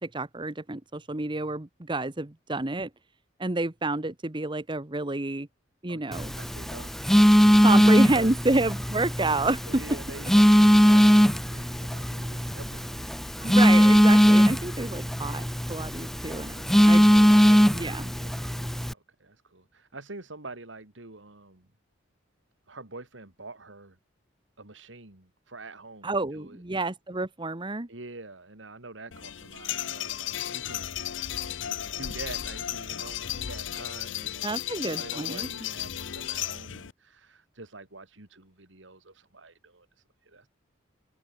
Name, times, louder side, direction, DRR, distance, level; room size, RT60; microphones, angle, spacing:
voice 1, 0.0-2.9 3.4-5.5 5.8-6.3 7.6-9.8 13.4-16.6 16.8-17.1 17.7-18.1 26.0-27.9 34.4-35.5, right 2 dB, 25° right, 1.2 m, -29 dB
voice 2, 5.9-7.5 7.8-8.3 9.7-13.2 16.5-21.7 22.7-24.0 24.6-26.6 27.9-30.9 31.8-34.5 35.0-40.5, right 2 dB, 80° right, 2.9 m, -46 dB
Telephone, 6.1-18.9, equal, ahead, 0.8 m, -20 dB
sound 1, 29.1-36.9, left 11 dB, 85° left, 0.7 m, -34 dB
open air
head